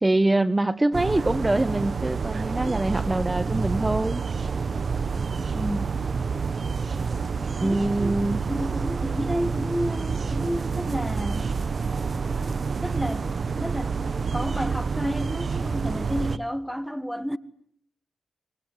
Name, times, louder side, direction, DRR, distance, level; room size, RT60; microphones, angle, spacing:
voice 1, 0.0-4.2 7.6-8.4, right 2 dB, 25° right, 1.2 m, -24 dB
sound 1, 0.9-16.4, right 5 dB, 65° right, 1.2 m, -28 dB
voice 2, 5.4-6.0 7.6-11.5 12.8-17.4, equal, ahead, 1.5 m, -31 dB
25.0 x 22.5 x 9.6 m
supercardioid pair, 40°, 0 cm